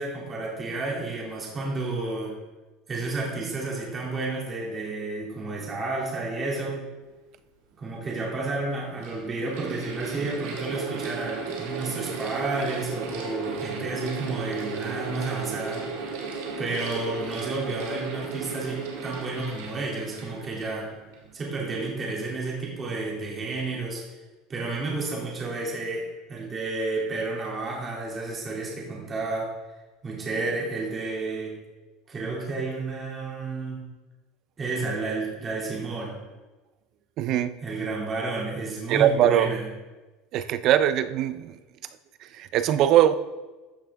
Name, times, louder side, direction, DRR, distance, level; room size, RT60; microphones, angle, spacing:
voice 1, 0.0-2.4 2.9-6.8 7.8-15.9 16.6-20.9 21.3-24.0 24.5-29.5 30.0-31.6 32.1-33.8 34.6-36.2 37.6-39.7, right 3 dB, 25° right, -3 dB, 2.6 m, -31 dB
Mechanical fan, 7.7-7.8 8.6-21.3, right 4 dB, 85° right, 2.1 m, -35 dB
voice 2, 37.2-37.5 38.9-39.6 40.3-41.5 42.4-43.1, right 11 dB, 45° right, 13 dB, 0.5 m, -21 dB
13.5 x 5.8 x 3.6 m, 1.2 s
supercardioid pair, 145°, 0 cm